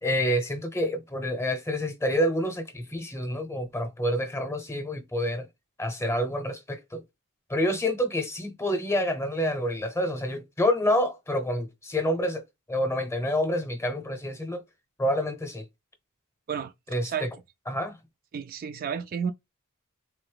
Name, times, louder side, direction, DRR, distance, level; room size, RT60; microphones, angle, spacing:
voice 1, 0.0-5.5 5.8-7.0 7.5-14.6 15.0-15.6 16.9-17.3 17.7-18.0, equal, 15° left, 0.8 m, -28 dB
voice 2, 18.3-19.3, right 7 dB, 45° right, 0.3 m, -31 dB
3.8 x 2.6 x 3.3 m
head